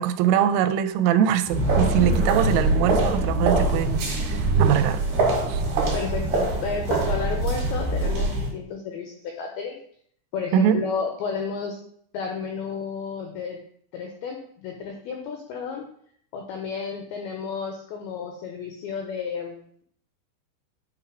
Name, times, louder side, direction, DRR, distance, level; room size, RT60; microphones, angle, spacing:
voice 1, 0.0-5.0 5.5-5.6 10.5-10.8, right 10 dB, 90° right, 10 dB, 3.2 m, -23 dB
sound 1, 1.5-8.5, right 2 dB, 60° right, 3.5 m, -23 dB
voice 2, 5.9-9.8 10.3-11.8 12.1-13.6 13.9-15.9 16.3-19.6, left 5 dB, 85° left, 2 dB, 2.2 m, -32 dB
9.0 x 3.7 x 4.9 m, 0.63 s
omnidirectional pair, 5.5 m